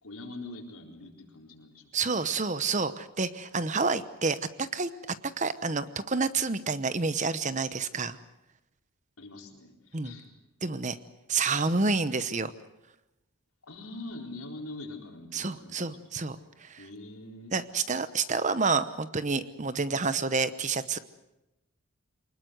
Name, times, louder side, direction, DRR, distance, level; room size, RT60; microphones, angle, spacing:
voice 1, 0.0-2.3 9.2-9.7 10.0-10.3 13.6-15.9 16.8-17.5, left 2 dB, 80° left, 2 dB, 4.2 m, -43 dB
voice 2, 1.9-4.9 5.4-8.2 9.9-10.1 10.6-11.0 11.3-12.5 15.3-16.8 17.5-21.0, right 4 dB, 35° right, 13 dB, 0.9 m, -29 dB
24.5 x 20.5 x 8.1 m, 0.93 s
head